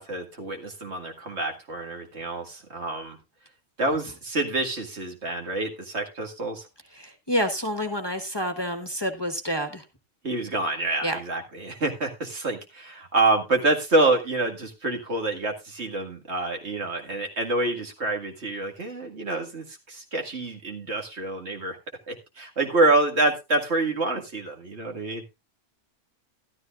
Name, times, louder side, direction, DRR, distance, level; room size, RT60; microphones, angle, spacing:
voice 1, 0.0-3.2 3.8-6.7 10.2-21.8 22.1-25.3, right 2 dB, 65° right, 2 dB, 2.2 m, -27 dB
voice 2, 6.9-9.8 11.0-11.2, equal, 20° left, 7 dB, 1.2 m, -28 dB
13.0 x 12.5 x 2.4 m, 0.24 s
omnidirectional pair, 1.2 m